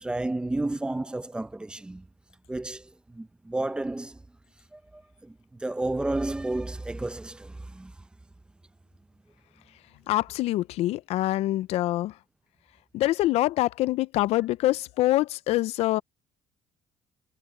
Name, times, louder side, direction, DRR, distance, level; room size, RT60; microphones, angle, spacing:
voice 1, 0.0-2.0 2.5-4.2 4.7-7.9, right 2 dB, 10° right, 0.6 m, -32 dB
voice 2, 10.1-12.2 12.9-16.0, left 16 dB, 65° left, 0.4 m, -25 dB
cardioid pair, 150°, 11 cm